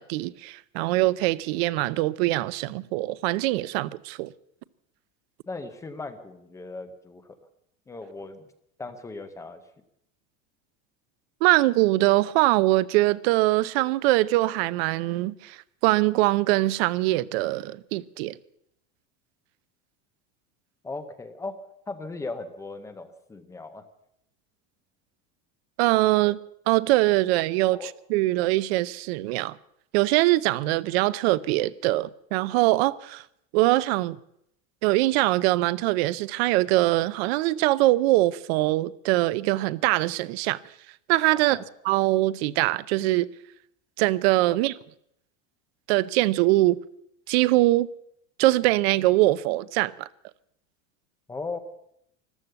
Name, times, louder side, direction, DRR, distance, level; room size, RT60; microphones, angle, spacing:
voice 1, 0.0-4.3 11.4-15.6 15.8-18.4 25.8-26.4 26.7-29.6 29.9-33.2 33.5-34.2 34.8-40.6 41.1-41.6 41.8-43.3 44.0-44.7 45.9-46.8 47.3-47.9 48.4-50.1, right 18 dB, 55° right, 0.6 m, -23 dB
voice 2, 5.5-7.4 7.9-8.5 8.8-9.6 20.8-21.6 21.9-23.8 26.2-26.3 27.7-27.9 41.5-41.6 51.3-51.6, left 3 dB, 10° left, 0.7 m, -37 dB
14.5 x 12.5 x 8.0 m
cardioid pair, 175°, 37 cm